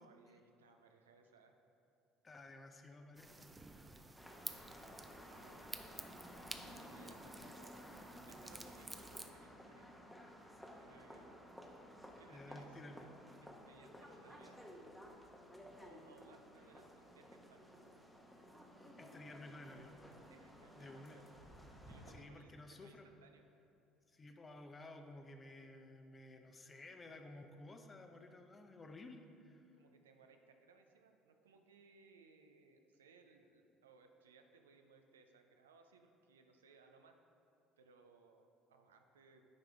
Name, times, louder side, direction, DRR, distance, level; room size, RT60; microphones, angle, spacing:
voice 1, 0.0-1.6 5.3-5.8 6.6-7.8 8.1-9.9 10.8-11.4 12.2-12.8 13.4-14.6 15.8-17.9 20.3-21.2 21.9-23.4 29.8-37.2 37.8-39.5, right 4 dB, 80° right, 5 dB, 0.5 m, -65 dB
voice 2, 2.2-3.9 12.3-13.1 19.0-19.9 20.8-21.2 22.1-23.1 24.1-29.6, left 2 dB, 25° left, 5 dB, 0.7 m, -54 dB
Running microwave oven, 3.1-21.9, equal, 60° left, 1.5 m, -77 dB
sound 1, 3.2-9.3, right 2 dB, 15° right, 0.5 m, -52 dB
sound 2, 4.1-22.2, equal, 5° left, 1.0 m, -56 dB
9.5 x 4.9 x 3.4 m, 2.6 s
figure-of-eight pair, 60°, 0 cm